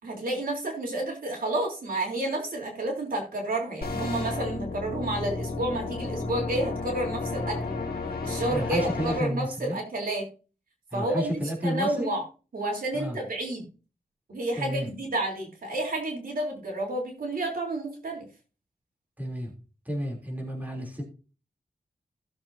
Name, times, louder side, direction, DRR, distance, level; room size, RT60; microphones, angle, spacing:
voice 1, 0.0-7.7 8.2-10.3 10.9-12.3 12.5-13.6 14.3-18.3, right 1 dB, 70° right, 1 dB, 3.7 m, -30 dB
sound 1, 3.8-9.2, left 3 dB, 85° left, 1.7 m, -32 dB
voice 2, 8.4-9.8 10.9-12.1 12.9-13.2 14.6-14.9 19.2-19.5 19.8-21.0, equal, 10° right, 0 dB, 3.3 m, -31 dB
16.5 x 7.4 x 2.8 m, 0.34 s
wide cardioid pair, 120°, 15 cm